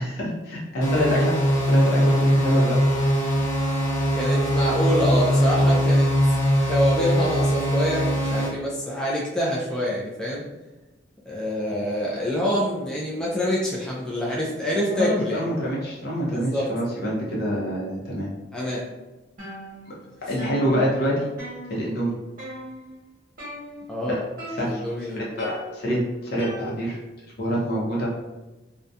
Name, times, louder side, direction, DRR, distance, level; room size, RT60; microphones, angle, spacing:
voice 1, 0.0-2.8 14.9-18.3 19.8-19.9 20.3-21.3 21.7-22.1 24.1-24.2 24.5-24.8 25.1-26.0 26.3-27.0 27.4-28.2, equal, 55° left, -5 dB, 0.6 m, -26 dB
sound 1, 0.8-8.5, equal, 85° left, 0.8 m, -21 dB
voice 2, 4.1-6.1 6.7-10.4 11.3-15.4 16.3-16.7 18.5-18.8 23.9-24.2 24.6-25.3, equal, 5° left, -6 dB, 0.3 m, -26 dB
sound 2, 19.4-20.1 20.4-22.1 22.4-22.9 23.4-24.0 24.4-25.0 25.4-27.1, equal, 45° right, 0.9 m, -38 dB
2.3 x 2.1 x 2.6 m, 1.1 s
head